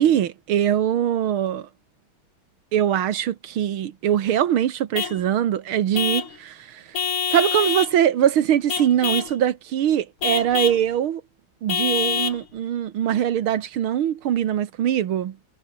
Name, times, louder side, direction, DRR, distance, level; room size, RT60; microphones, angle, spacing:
voice 1, 0.0-1.7 2.7-6.8 7.3-11.2 11.6-15.4, right 10 dB, 80° right, 2.1 m, -22 dB
Vehicle horn car horn honking / Truck, 4.9-5.2 5.9-6.4 6.9-8.0 8.7-9.4 10.2-10.8 11.7-12.4, left 6 dB, 85° left, 3.2 m, -25 dB
omnidirectional pair, 2.3 m